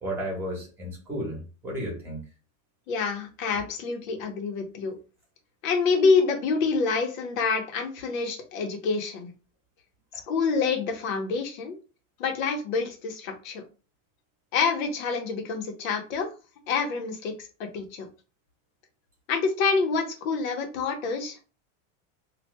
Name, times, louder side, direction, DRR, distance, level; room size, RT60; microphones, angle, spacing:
voice 1, 0.0-2.2 10.1-10.2, equal, 5° right, -2 dB, 1.3 m, -33 dB
voice 2, 2.9-4.9 5.6-9.3 10.3-11.7 12.2-13.7 14.5-16.3 16.7-18.1 19.3-21.5, left 4 dB, 80° left, 5 dB, 1.1 m, -27 dB
4.2 x 2.5 x 2.2 m, 0.34 s
supercardioid pair, 165°, 39 cm